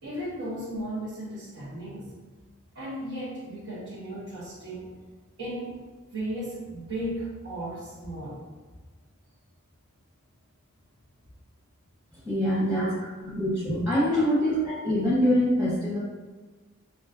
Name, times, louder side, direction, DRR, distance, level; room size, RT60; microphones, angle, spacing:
voice 1, 0.0-2.1 2.7-5.0 5.4-5.8 6.1-8.4 12.6-13.0 14.3-14.4, right 1 dB, 90° right, -12 dB, 1.4 m, -35 dB
voice 2, 12.3-12.8 13.4-14.6 14.8-16.0, left 1 dB, 5° right, -10 dB, 0.9 m, -24 dB
5.4 x 3.1 x 2.5 m, 1.3 s
head